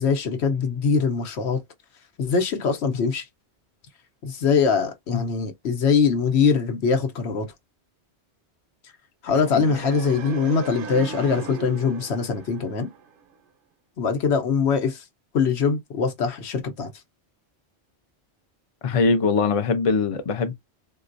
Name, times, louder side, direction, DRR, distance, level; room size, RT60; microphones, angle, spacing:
voice 1, 0.0-1.6 2.2-3.2 4.2-7.5 9.2-12.9 14.0-15.0 15.3-16.9, left 5 dB, 75° left, 1.0 m, -22 dB
sound 1, 9.2-13.4, right 5 dB, 60° right, 0.7 m, -37 dB
voice 2, 18.8-20.5, left 4 dB, 40° left, 0.6 m, -22 dB
3.8 x 2.2 x 2.5 m
omnidirectional pair, 1.2 m